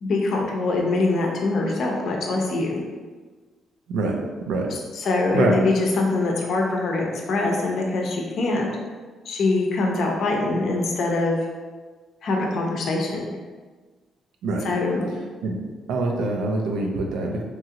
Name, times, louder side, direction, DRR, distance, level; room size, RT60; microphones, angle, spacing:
voice 1, 0.0-2.8 4.7-8.7 9.2-11.5 12.2-13.3 14.6-15.1, left 2 dB, 65° left, 0 dB, 0.6 m, -23 dB
voice 2, 15.9-17.4, right 3 dB, 90° right, 1 dB, 0.4 m, -24 dB
2.9 x 2.4 x 2.8 m, 1.4 s
cardioid pair, 90°, 0 cm